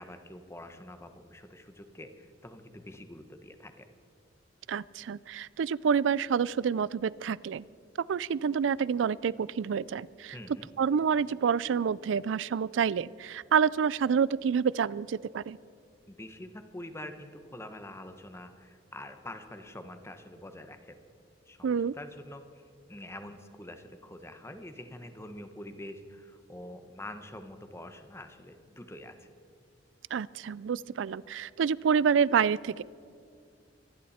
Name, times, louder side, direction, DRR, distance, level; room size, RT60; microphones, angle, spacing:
voice 1, 0.0-3.9 10.3-10.7 16.1-21.0 21.5-22.6 22.9-29.3, left 1 dB, 15° left, 8 dB, 1.1 m, -45 dB
voice 2, 4.7-7.6 8.1-10.3 10.8-15.6 21.6-21.9 30.1-32.8, right 7 dB, 85° right, 22 dB, 0.4 m, -28 dB
25.0 x 11.5 x 4.3 m, 2.4 s
head